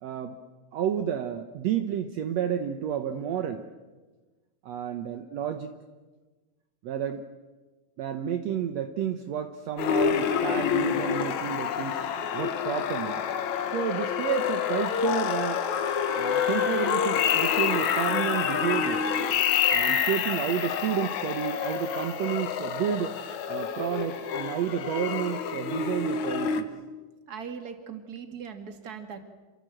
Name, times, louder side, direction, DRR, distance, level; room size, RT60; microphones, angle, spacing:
voice 1, 0.0-0.4 0.7-3.7 4.6-5.7 6.8-7.2 8.0-12.0 12.3-13.2 13.7-15.6 16.1-19.1 19.7-23.1 23.5-26.7, right 9 dB, 65° right, 7 dB, 2.1 m, -31 dB
sound 1, 9.8-26.6, left 7 dB, 70° left, 2.7 m, -27 dB
voice 2, 27.3-29.2, right 6 dB, 35° right, 6 dB, 2.4 m, -39 dB
28.0 x 24.5 x 7.8 m, 1.3 s
omnidirectional pair, 3.5 m